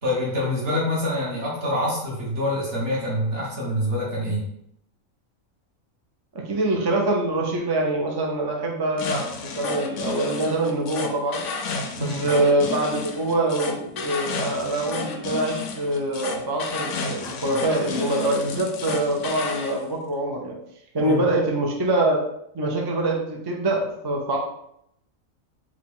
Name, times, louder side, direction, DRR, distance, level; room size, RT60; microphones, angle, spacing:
voice 1, 0.0-4.4 12.0-12.3 21.0-21.2, left 1 dB, 50° right, -4 dB, 1.6 m, -26 dB
voice 2, 6.3-11.4 12.0-20.6 20.9-22.2 22.5-24.4, right 1 dB, 35° right, -1 dB, 0.4 m, -24 dB
sound 1, 9.0-19.8, left 4 dB, 70° left, 0.9 m, -32 dB
4.8 x 2.4 x 3.6 m, 0.75 s
omnidirectional pair, 1.4 m